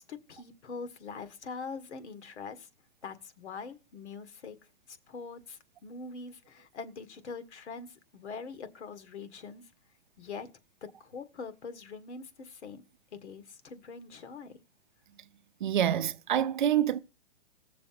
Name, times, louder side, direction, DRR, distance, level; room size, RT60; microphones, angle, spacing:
voice 1, 0.0-2.7 3.0-4.6 4.9-9.7 10.2-10.5 10.8-12.8 13.1-14.6, left 5 dB, 80° left, 1.8 m, -43 dB
voice 2, 15.6-17.0, right 10 dB, 45° right, 0.6 m, -26 dB
17.5 x 6.8 x 5.9 m
hypercardioid pair, 175°, 34 cm